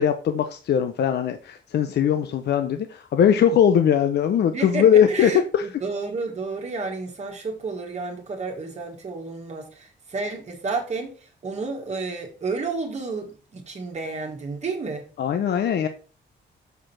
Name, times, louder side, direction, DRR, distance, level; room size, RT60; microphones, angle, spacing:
voice 1, 0.0-5.7 15.2-15.9, left 8 dB, 60° left, 8 dB, 0.7 m, -20 dB
voice 2, 4.5-15.1, right 3 dB, 35° right, 1 dB, 1.7 m, -31 dB
6.8 x 5.0 x 5.9 m, 0.37 s
wide cardioid pair, 170°, 19 cm